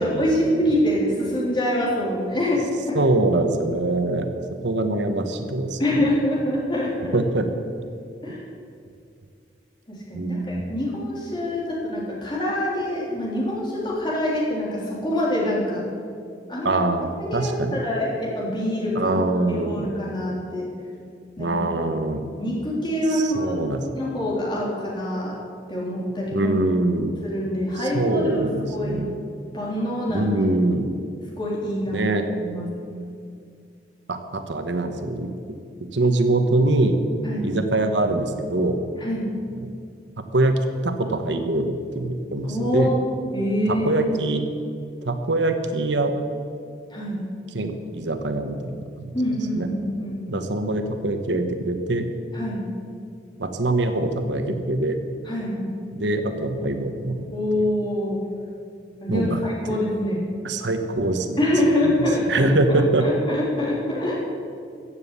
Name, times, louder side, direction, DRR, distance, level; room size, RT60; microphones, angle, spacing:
voice 1, 0.0-3.0 5.8-7.2 8.2-8.4 9.9-15.8 16.5-16.8 17.2-19.1 19.5-20.7 21.4-21.5 22.4-23.5 24.0-25.4 25.7-26.5 27.2-29.1 29.5-30.3 31.3-32.0 32.4-32.7 37.2-37.5 39.0-39.3 42.4-43.0 43.3-44.1 46.9-47.2 49.1-50.2 52.3-52.7 55.3-55.7 57.3-58.2 59.0-60.2 61.4-62.5 63.0-64.1, left 1 dB, 25° left, -5 dB, 3.5 m, -25 dB
voice 2, 2.9-4.3 4.6-6.1 7.1-7.5 10.1-10.6 16.6-17.8 18.9-19.9 21.4-22.2 23.1-23.8 26.3-27.1 27.8-29.2 30.1-30.9 31.9-32.3 34.1-35.3 35.9-37.0 37.4-38.8 40.2-42.9 43.7-44.4 45.0-46.1 47.5-49.1 49.5-49.7 50.3-52.1 53.4-55.0 55.9-57.3 59.1-59.4 59.7-59.8 60.4-61.4 61.8-61.9 62.3-63.1, right 2 dB, 75° right, 7 dB, 1.1 m, -23 dB
15.5 x 7.4 x 8.3 m, 2.4 s
head